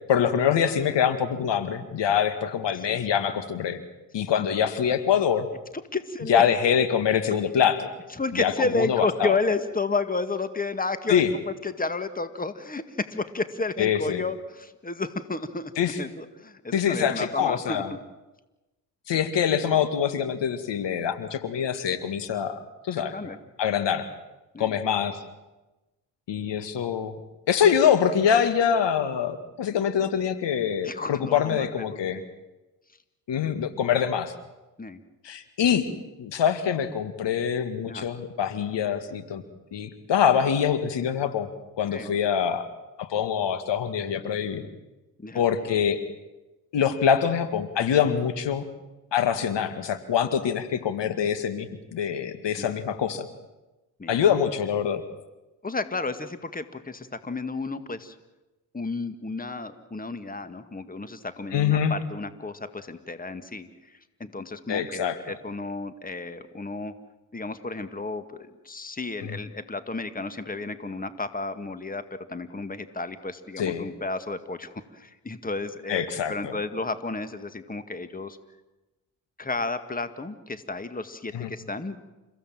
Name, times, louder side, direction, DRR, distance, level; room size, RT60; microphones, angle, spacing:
voice 1, 0.1-3.8 4.1-5.5 6.3-7.9 8.4-9.4 11.1-11.3 13.8-14.2 15.8-16.0 16.7-17.9 19.1-23.1 23.6-24.1 24.6-25.2 26.3-27.2 27.5-32.2 33.3-34.3 35.2-35.9 36.2-39.4 39.7-41.5 41.8-42.7 43.0-44.7 45.4-46.0 46.7-48.7 49.1-53.3 54.1-55.0 61.5-61.9 64.7-65.2 69.2-69.4 73.6-73.9 75.9-76.5 81.3-81.5, left 8 dB, 60° left, 11 dB, 2.1 m, -24 dB
voice 2, 5.9-6.4 8.1-11.2 11.6-15.7 16.0-18.0 19.6-19.8 23.1-23.4 24.5-24.8 30.8-32.2 34.8-35.0 37.9-38.1 41.9-42.1 45.2-45.4 52.6-52.8 54.0-54.2 55.6-58.2 58.7-66.9 67.3-72.0 72.3-78.4 79.4-82.1, left 3 dB, 20° left, 11 dB, 2.0 m, -32 dB
29.5 x 16.0 x 7.6 m, 1.1 s
hypercardioid pair, 50°, 48 cm